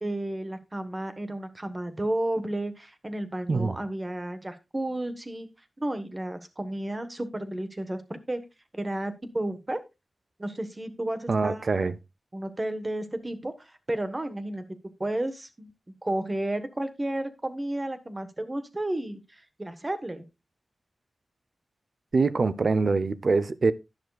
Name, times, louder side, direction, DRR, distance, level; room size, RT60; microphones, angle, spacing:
voice 1, 0.0-5.5 5.8-8.4 8.7-9.8 10.4-11.9 12.3-14.6 15.0-15.7 16.0-20.2, right 1 dB, 25° right, 1.2 m, -32 dB
voice 2, 11.3-11.9 22.1-23.7, right 4 dB, 55° right, 0.6 m, -24 dB
11.0 x 10.5 x 2.4 m
wide cardioid pair, 120°, 0 cm